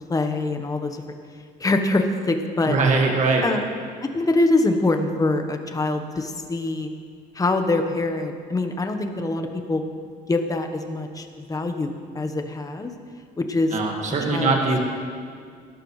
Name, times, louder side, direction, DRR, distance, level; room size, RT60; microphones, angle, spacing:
voice 1, 0.1-1.0 1.6-2.8 3.4-3.6 4.1-6.9 7.3-9.8 10.3-12.9 13.4-13.7 14.2-14.5, left 2 dB, 20° left, 6 dB, 1.1 m, -24 dB
voice 2, 2.7-3.4 13.7-14.8, right 3 dB, 45° right, 1 dB, 1.8 m, -21 dB
18.5 x 11.5 x 3.2 m, 2.1 s
cardioid pair, 110°, 17 cm